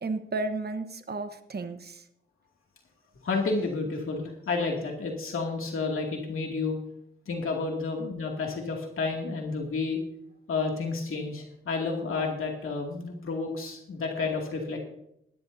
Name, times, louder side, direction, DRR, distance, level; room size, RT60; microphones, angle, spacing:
voice 1, 0.0-2.0, right 3 dB, 50° right, 8 dB, 1.1 m, -33 dB
voice 2, 3.2-6.8 7.3-10.0 10.5-14.8, left 4 dB, 85° left, 0 dB, 2.5 m, -30 dB
18.5 x 13.0 x 2.8 m, 0.75 s
cardioid pair, 65°, 21 cm